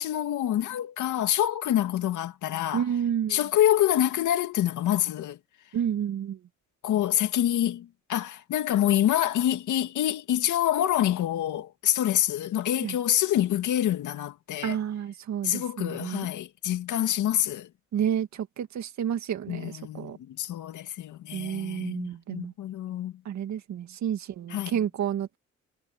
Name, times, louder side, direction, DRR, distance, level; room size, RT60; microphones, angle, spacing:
voice 1, 0.0-2.9 3.3-5.4 6.8-14.8 15.4-17.7 19.5-23.2 24.5-24.8, left 12 dB, 80° left, 2.2 m, -26 dB
voice 2, 2.7-3.4 5.7-6.4 12.8-12.9 14.6-16.3 17.9-20.2 21.3-22.5 23.3-25.4, right 9 dB, 65° right, 2.1 m, -30 dB
cardioid pair, 90°, 30 cm